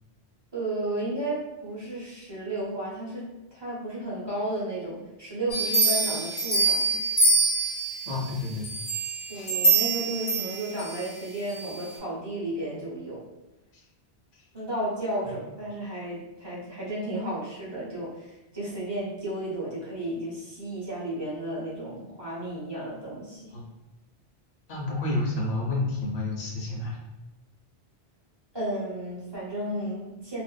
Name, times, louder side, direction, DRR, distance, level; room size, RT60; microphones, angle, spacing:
voice 1, 0.5-7.0 9.3-13.3 14.5-23.5 28.5-30.4, right 1 dB, 30° right, -8 dB, 0.7 m, -33 dB
sound 1, 5.5-8.1 8.6-11.0 11.5-11.6, right 3 dB, 40° left, 0.8 m, -24 dB
voice 2, 8.1-8.7 9.3-9.5 13.7-13.8 14.3-14.4 23.5-23.6 24.7-27.0, left 2 dB, 90° left, -2 dB, 1.0 m, -30 dB
2.4 x 2.4 x 2.2 m, 1.0 s
omnidirectional pair, 1.0 m